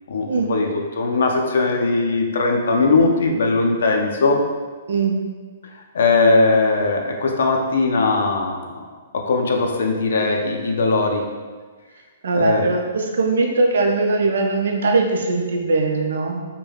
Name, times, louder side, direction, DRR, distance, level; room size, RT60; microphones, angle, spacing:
voice 1, 0.1-4.4 5.7-8.8 9.1-11.2 12.3-12.7, left 3 dB, 65° left, 1 dB, 0.4 m, -19 dB
voice 2, 12.2-16.5, right 3 dB, 65° right, 2 dB, 0.4 m, -20 dB
3.2 x 2.1 x 2.3 m, 1.4 s
hypercardioid pair, 175°, 0 cm